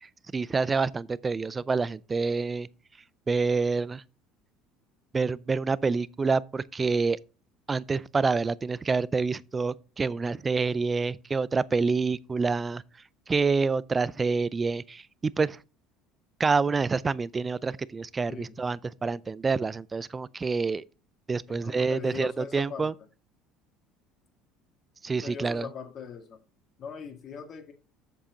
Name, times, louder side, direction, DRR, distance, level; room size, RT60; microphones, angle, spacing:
voice 1, 0.0-2.7 3.3-4.0 5.1-7.2 7.7-12.8 13.3-15.6 16.4-20.8 21.3-22.9 25.0-25.7, right 4 dB, 20° right, 0.4 m, -27 dB
voice 2, 21.5-22.9 25.2-26.4 26.8-27.7, left 6 dB, 40° left, 1.9 m, -40 dB
7.7 x 7.2 x 3.8 m
cardioid pair, 135°, 0 cm